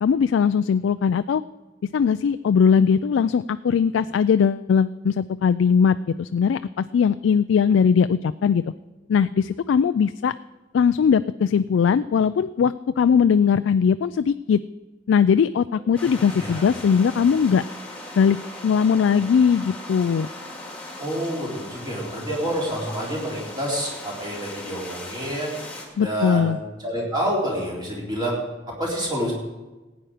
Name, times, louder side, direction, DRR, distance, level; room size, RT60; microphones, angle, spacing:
voice 1, 0.0-1.4 1.9-8.6 9.1-10.3 10.7-14.6 15.1-17.6 18.2-18.4 18.6-20.3 26.0-26.6, left 6 dB, 90° left, 12 dB, 0.3 m, -20 dB
sound 1, 16.0-25.9, left 1 dB, 5° left, 2.1 m, -38 dB
voice 2, 21.0-25.6 26.0-29.3, equal, 25° right, -4 dB, 3.7 m, -28 dB
16.5 x 9.1 x 5.0 m, 1.2 s
head